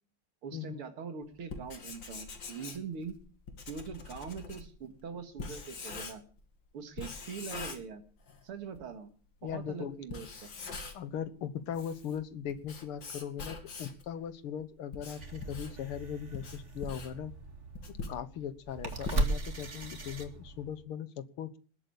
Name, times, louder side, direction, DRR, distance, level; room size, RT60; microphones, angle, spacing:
voice 1, 0.4-3.2 3.7-6.2 6.7-8.0 8.4-9.1 9.5-10.5 18.9-19.1, right 6 dB, 85° right, 8 dB, 2.8 m, -42 dB
Writing, 1.4-6.4 7.0-8.4 8.7-8.8 9.5-9.6 10.0-11.2 11.6-14.1 14.6-19.7, left 4 dB, 60° left, 3.0 m, -44 dB
voice 2, 9.4-10.0 10.9-17.3 18.1-21.6, left 9 dB, 85° left, 14 dB, 2.1 m, -39 dB
sound 1, 15.2-20.8, right 2 dB, 35° right, 2.4 m, -37 dB
19.5 x 8.3 x 8.3 m, 0.41 s
omnidirectional pair, 2.4 m